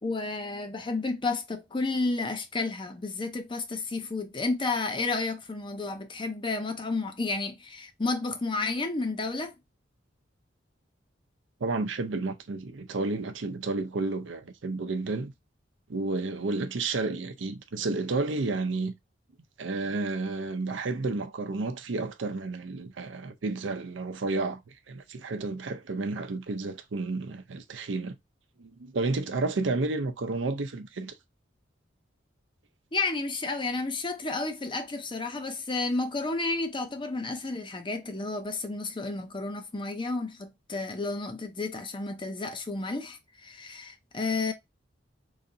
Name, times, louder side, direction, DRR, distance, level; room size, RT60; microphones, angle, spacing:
voice 1, 0.0-9.5 32.9-44.5, left 3 dB, 25° left, 0.6 m, -31 dB
voice 2, 11.6-15.3 15.9-18.9 19.6-28.2 28.6-31.1, right 3 dB, 85° right, 0.6 m, -31 dB
3.2 x 2.7 x 3.7 m
head